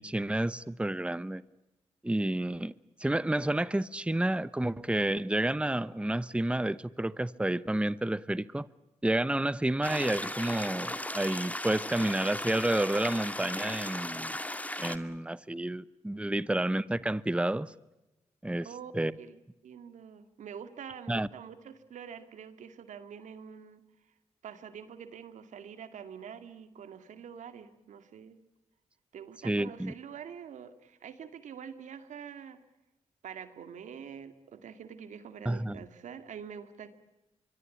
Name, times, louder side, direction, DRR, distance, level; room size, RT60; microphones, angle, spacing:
voice 1, 0.0-1.4 2.0-2.7 3.0-8.7 9.0-14.3 14.8-17.7 18.4-18.7 18.9-19.1 21.1-21.3 29.4-29.9 35.4-35.8, right 1 dB, 10° right, 0.9 m, -30 dB
sound 1, 9.8-15.0, left 1 dB, 10° left, 2.2 m, -36 dB
voice 2, 18.6-23.8 24.4-28.4 29.1-32.6 33.2-36.9, right 7 dB, 85° right, 2.0 m, -46 dB
25.0 x 23.5 x 8.4 m
cardioid pair, 55°, 12 cm